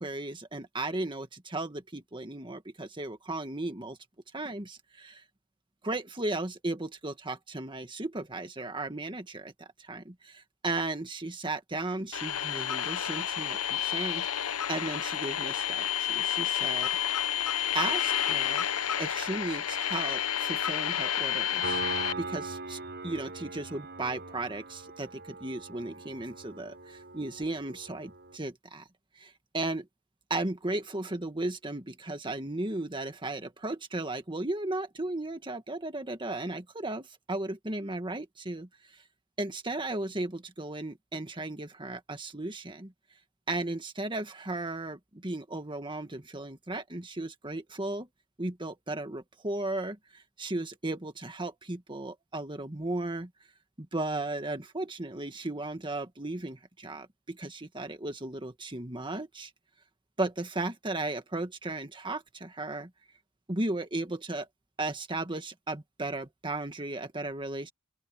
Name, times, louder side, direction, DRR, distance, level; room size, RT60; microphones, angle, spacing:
voice 1, 0.0-4.0 4.3-5.2 5.8-16.9 17.7-18.7 19.0-21.8 22.2-28.8 29.2-29.9 30.3-39.0 39.4-42.9 43.5-48.1 48.4-53.3 53.8-59.5 60.2-62.9 63.5-64.5 64.8-67.7, right 2 dB, 20° right, 1.9 m, -35 dB
sound 1, 12.1-22.1, left 10 dB, 90° left, 0.9 m, -30 dB
Piano, 21.6-28.4, right 3 dB, 50° right, 6.3 m, -41 dB
open air
head